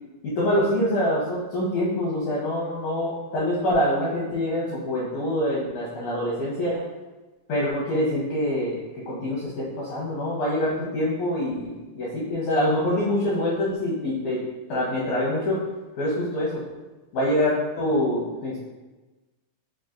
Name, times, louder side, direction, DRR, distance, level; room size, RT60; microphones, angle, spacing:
voice 1, 0.2-6.8 7.5-14.4 14.7-15.6 16.0-16.6 17.1-18.6, left 1 dB, 80° left, -7 dB, 1.7 m, -25 dB
6.2 x 2.5 x 2.5 m, 1.2 s
omnidirectional pair, 4.4 m